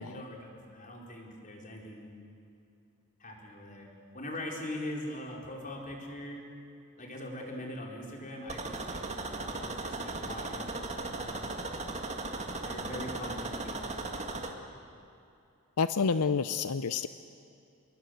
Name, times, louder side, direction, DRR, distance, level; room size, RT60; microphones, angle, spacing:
voice 1, 0.0-2.1 3.2-3.9 4.1-6.5 7.0-11.5 12.6-14.0, left 1 dB, 35° left, 0 dB, 4.6 m, -42 dB
sound 1, 8.5-14.5, right 2 dB, 30° right, 2.1 m, -37 dB
voice 2, 15.8-17.1, left 5 dB, 85° left, 12 dB, 0.6 m, -29 dB
28.0 x 22.0 x 8.0 m, 2.6 s
head